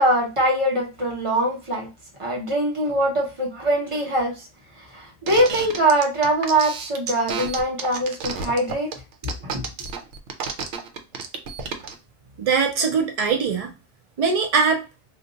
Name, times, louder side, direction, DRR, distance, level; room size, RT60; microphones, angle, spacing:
voice 1, 0.0-1.9 2.2-4.5 4.8-8.9 9.4-9.6, right 1 dB, 30° right, 0.9 m, -22 dB
sound 1, 5.3-11.9, right 5 dB, 80° right, 0.9 m, -31 dB
voice 2, 12.4-13.7 14.2-14.8, right 5 dB, 65° right, 0.3 m, -21 dB
2.5 x 2.4 x 3.8 m
omnidirectional pair, 1.2 m